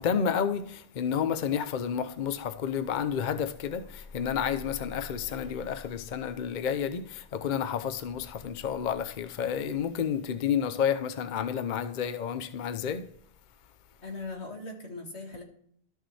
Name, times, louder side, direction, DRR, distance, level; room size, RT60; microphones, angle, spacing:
voice 1, 0.0-13.1, left 8 dB, 50° left, 0.7 m, -30 dB
voice 2, 14.0-15.4, left 3 dB, 90° left, 2.2 m, -39 dB
12.5 x 6.4 x 3.2 m
omnidirectional pair, 1.1 m